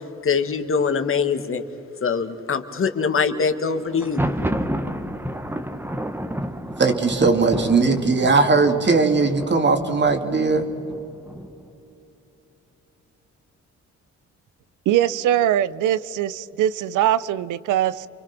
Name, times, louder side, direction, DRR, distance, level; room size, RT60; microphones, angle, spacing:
voice 1, 0.2-1.6 2.0-4.2, left 5 dB, 45° left, 1.9 m, -23 dB
Thunder, 3.9-11.7, right 1 dB, 5° right, 1.4 m, -30 dB
voice 2, 6.8-10.7, right 4 dB, 35° right, 2.7 m, -19 dB
voice 3, 14.9-18.1, right 11 dB, 85° right, 0.8 m, -21 dB
29.5 x 24.0 x 6.1 m
cardioid pair, 90°, 30 cm